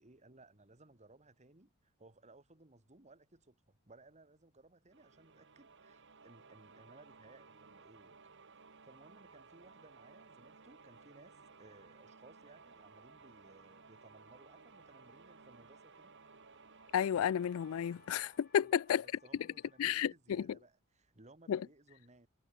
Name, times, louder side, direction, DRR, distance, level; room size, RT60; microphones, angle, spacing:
voice 1, 0.0-8.3 8.8-16.2 18.6-22.3, right 2 dB, 30° right, 2.3 m, -61 dB
sound 1, 4.9-19.5, right 4 dB, 60° right, 2.4 m, -59 dB
sound 2, 9.9-19.9, left 6 dB, 45° left, 4.2 m, -72 dB
voice 2, 16.9-19.0 19.8-20.5 21.5-21.6, left 9 dB, 70° left, 0.3 m, -32 dB
head